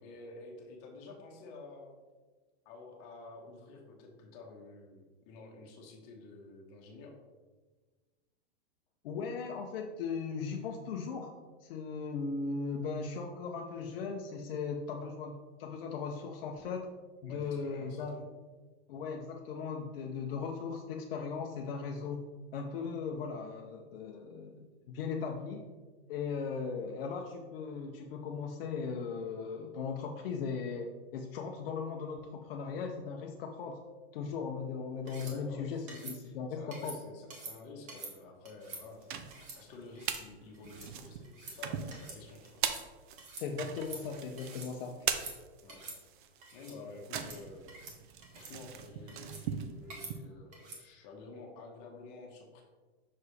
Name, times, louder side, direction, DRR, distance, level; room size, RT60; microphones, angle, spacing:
voice 1, 0.0-2.0 2.6-5.0 5.3-7.1 17.2-18.2 35.2-39.1 39.6-42.6 45.6-45.8 46.5-47.7 48.3-52.6, left 3 dB, 30° left, 0 dB, 1.1 m, -50 dB
voice 2, 9.0-11.3 11.6-16.9 17.2-18.2 18.9-22.2 22.5-24.6 24.9-25.6 26.1-33.8 34.1-37.0 43.3-44.9, left 5 dB, 60° left, 2 dB, 0.7 m, -38 dB
sound 1, 35.1-35.4 35.9-36.2 36.7-37.0 37.3-37.5 37.9-38.1 38.5-38.8 39.3-39.6 40.0-40.2 40.5-40.9 41.2-41.6 41.9-42.2 42.4-42.9 43.2-43.5 43.8-44.7 45.1-45.4 45.7-46.0 46.4-46.8 47.1-47.4 47.7-48.0 48.2-48.5 49.1-49.4 49.9-50.1 50.5-50.8, right 3 dB, 25° right, 1.0 m, -47 dB
sound 2, 38.8-40.3 40.6-50.2, right 8 dB, 50° right, 0.6 m, -40 dB
6.0 x 4.8 x 3.2 m, 1.3 s
supercardioid pair, 165°, 32 cm